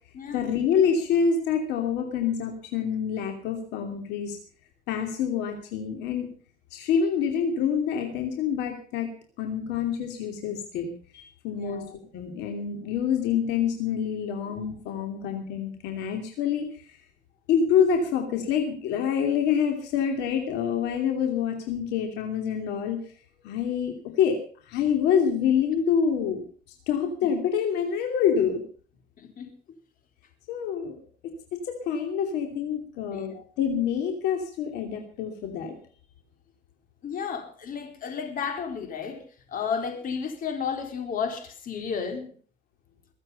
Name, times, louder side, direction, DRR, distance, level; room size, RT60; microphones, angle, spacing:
voice 1, 0.3-4.4 4.9-6.3 6.7-9.1 9.4-11.8 12.1-17.0 17.5-23.0 23.4-24.4 24.7-26.4 26.9-28.6 30.5-31.0 31.5-35.7, left 7 dB, 90° left, 4 dB, 2.8 m, -26 dB
voice 2, 11.5-11.9 27.2-27.3 29.2-29.5 33.1-33.4 37.0-42.3, left 6 dB, 55° left, 6 dB, 4.1 m, -33 dB
23.0 x 8.1 x 5.6 m, 0.43 s
cardioid pair, 110°, 17 cm